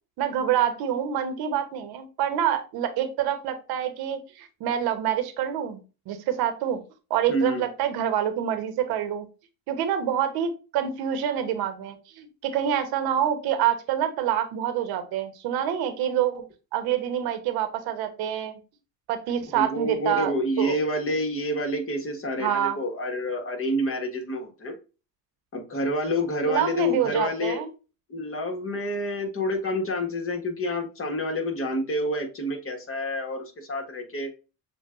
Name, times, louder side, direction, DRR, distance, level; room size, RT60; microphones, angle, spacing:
voice 1, 0.2-5.8 6.1-6.8 7.1-9.2 9.7-18.6 19.1-20.8 22.4-22.8 26.5-27.7, right 10 dB, 65° right, 8 dB, 1.1 m, -27 dB
voice 2, 7.3-7.6 19.5-24.8 25.5-27.6 28.1-34.3, left 1 dB, 35° left, 3 dB, 1.5 m, -28 dB
6.9 x 2.4 x 2.5 m, 0.32 s
hypercardioid pair, 65°, 40 cm